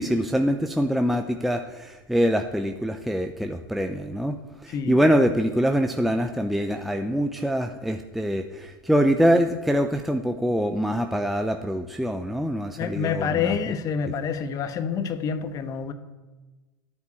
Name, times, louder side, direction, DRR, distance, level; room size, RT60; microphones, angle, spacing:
voice 1, 0.0-4.4 4.6-13.6, equal, ahead, 5 dB, 0.7 m, -24 dB
voice 2, 12.8-15.9, left 7 dB, 30° left, 10 dB, 1.3 m, -27 dB
12.5 x 9.7 x 8.3 m, 1.2 s
figure-of-eight pair, 90°, 12 cm